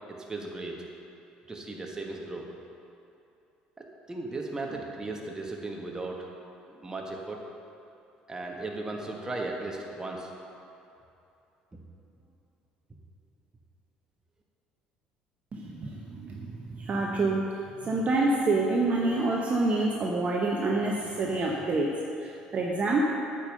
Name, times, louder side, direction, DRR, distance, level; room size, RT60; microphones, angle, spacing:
voice 1, 0.1-0.8 1.5-2.5 3.8-6.3 6.7-7.4 8.3-10.3 11.7-11.8, right 2 dB, 20° right, 0 dB, 1.5 m, -36 dB
voice 2, 15.5-23.1, right 2 dB, 40° right, -1 dB, 0.9 m, -27 dB
8.7 x 5.5 x 6.6 m, 2.8 s
hypercardioid pair, 65°, 3 cm